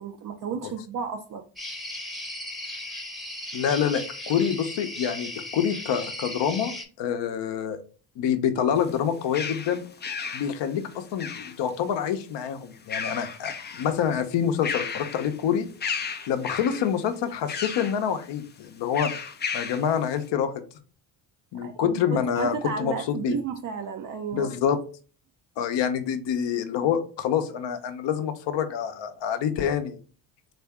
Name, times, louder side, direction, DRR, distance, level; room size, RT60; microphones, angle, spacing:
voice 1, 0.0-1.4 21.5-24.5, right 6 dB, 40° right, 0.4 m, -33 dB
sound 1, 1.6-6.9, left 1 dB, ahead, 0.8 m, -36 dB
voice 2, 3.5-6.7 7.0-7.8 8.2-9.8 10.3-15.7 16.3-19.1 19.5-20.5 21.5-23.4 24.3-24.8 25.6-30.0, left 8 dB, 60° left, 0.7 m, -26 dB
sound 2, 8.8-11.8 12.7-14.0 14.4-15.4 15.8-16.9 17.5-18.0 18.9-19.9, left 6 dB, 25° left, 0.4 m, -34 dB
3.4 x 2.6 x 3.5 m
hypercardioid pair, 60°, 49 cm